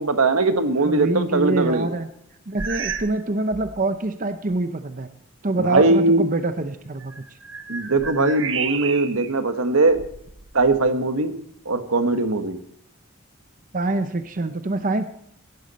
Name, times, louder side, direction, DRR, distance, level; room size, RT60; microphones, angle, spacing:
voice 1, 0.0-1.9 5.6-6.2 7.7-10.0 10.5-11.3 11.6-12.6, right 2 dB, 85° right, 8 dB, 1.4 m, -20 dB
voice 2, 0.8-2.1 2.5-5.1 5.4-7.1 13.7-15.0, right 2 dB, 40° right, 9 dB, 0.7 m, -25 dB
sound 1, 2.6-3.2 3.5-3.8 4.5-4.6 7.0-9.3 9.9-10.9, right 6 dB, 60° right, 1.2 m, -32 dB
17.0 x 12.0 x 4.2 m, 0.74 s
head